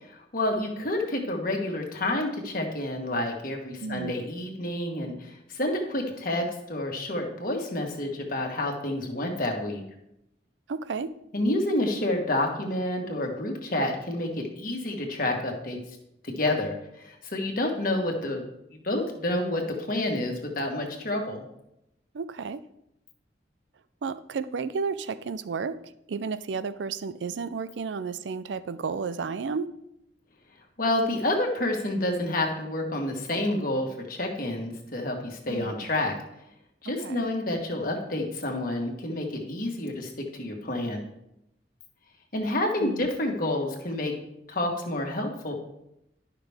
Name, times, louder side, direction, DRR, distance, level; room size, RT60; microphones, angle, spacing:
voice 1, 0.0-9.8 11.3-15.8 16.2-18.4 18.8-21.4 30.8-36.2 36.8-41.0 42.3-44.1 44.5-45.5, left 1 dB, 50° left, 2 dB, 1.5 m, -29 dB
voice 2, 3.8-4.2 10.7-11.1 22.1-22.6 24.0-29.7 35.5-35.9 37.0-37.3 42.8-43.1, right 5 dB, 80° right, 15 dB, 0.4 m, -32 dB
11.5 x 5.9 x 3.5 m, 0.82 s
head